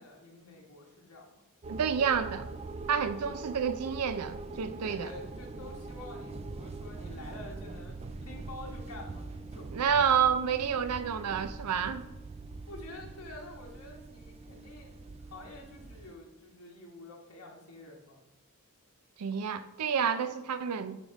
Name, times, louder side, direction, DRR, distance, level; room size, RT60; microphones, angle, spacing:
voice 1, 0.0-1.4 4.8-9.7 12.7-18.2, left 2 dB, 70° left, -1 dB, 1.5 m, -48 dB
sound 1, 1.6-16.1, right 3 dB, 30° right, 0.3 m, -43 dB
voice 2, 1.7-2.5 2.9-5.1 9.7-12.0 19.2-21.0, right 7 dB, 90° right, 11 dB, 0.5 m, -29 dB
8.3 x 3.6 x 5.2 m, 0.97 s
head